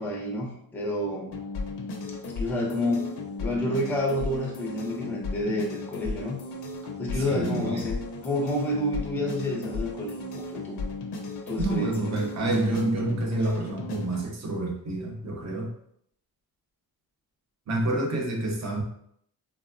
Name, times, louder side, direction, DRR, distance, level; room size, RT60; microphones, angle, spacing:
voice 1, 0.0-1.4 2.4-3.1 3.4-6.4 7.0-10.8 11.5-12.1, left 1 dB, 5° left, -1 dB, 0.4 m, -29 dB
sound 1, 1.3-14.2, left 3 dB, 80° left, 0.6 m, -35 dB
voice 2, 7.2-7.9 11.6-15.7 17.7-18.8, right 2 dB, 45° right, 1 dB, 0.7 m, -28 dB
3.4 x 2.0 x 2.5 m, 0.69 s
wide cardioid pair, 135°, 38 cm